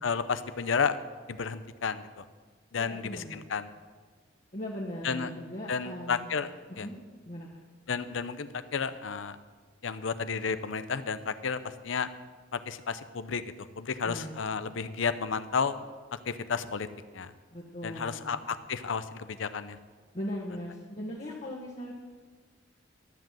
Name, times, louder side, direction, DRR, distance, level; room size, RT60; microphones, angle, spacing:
voice 1, 0.0-1.0 1.3-2.2 2.7-3.7 5.0-5.3 5.7-6.5 6.8-6.9 7.9-9.4 9.8-12.1 12.5-15.8 16.1-16.9 17.1-17.3 17.8-19.8, left 5 dB, 80° left, 12 dB, 0.6 m, -32 dB
voice 2, 2.7-3.4 4.5-6.3 6.8-7.0 7.2-7.6 14.0-14.3 17.5-18.4 20.1-21.9, equal, 40° left, -4 dB, 1.5 m, -39 dB
13.0 x 7.6 x 7.5 m, 1.5 s
head